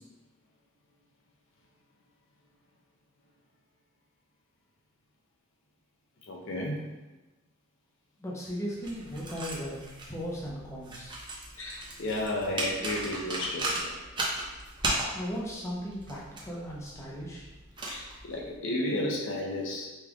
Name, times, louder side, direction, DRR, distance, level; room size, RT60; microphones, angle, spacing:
voice 1, 6.3-6.8 11.6-14.0 17.9-19.9, left 1 dB, 60° left, -1 dB, 0.6 m, -33 dB
voice 2, 8.2-9.8 10.1-11.2 15.1-17.5, equal, 15° left, -6 dB, 0.7 m, -37 dB
sound 1, 8.8-18.6, right 1 dB, 20° right, 0.7 m, -36 dB
5.2 x 3.2 x 2.3 m, 1.1 s
head